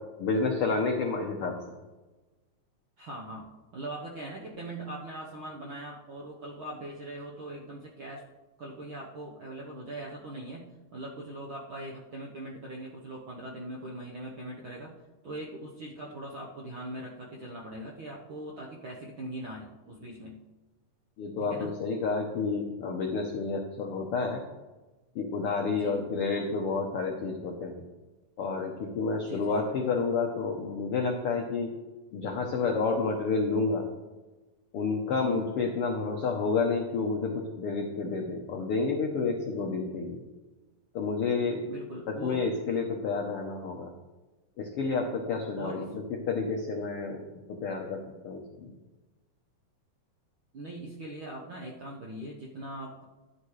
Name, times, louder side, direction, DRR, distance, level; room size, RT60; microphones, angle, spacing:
voice 1, 0.2-1.5 21.2-24.4 25.1-27.8 28.4-31.7 32.1-33.8 34.7-37.3 37.6-40.2 40.9-41.7 42.1-43.9 44.6-48.7, left 4 dB, 85° left, 2 dB, 1.2 m, -30 dB
voice 2, 3.0-3.4 3.7-8.2 8.6-14.9 15.2-20.4 21.4-21.7 25.7-26.0 29.2-29.8 35.1-35.5 41.7-42.4 45.6-45.9 50.5-53.0, right 1 dB, 65° right, -3 dB, 1.2 m, -41 dB
13.0 x 9.1 x 3.3 m, 1.2 s
omnidirectional pair, 3.9 m